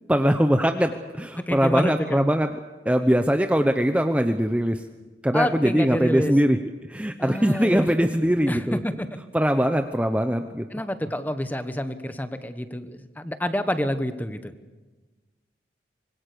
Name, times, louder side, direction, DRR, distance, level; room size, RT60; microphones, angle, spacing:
voice 1, 0.1-2.5 2.8-4.8 5.2-6.6 6.9-8.8 9.3-10.7, equal, 10° right, 7 dB, 0.8 m, -21 dB
voice 2, 1.3-2.2 5.3-6.3 7.2-7.9 8.5-9.1 10.7-14.5, equal, 10° left, 10 dB, 1.2 m, -28 dB
25.5 x 21.5 x 6.9 m, 1.2 s
head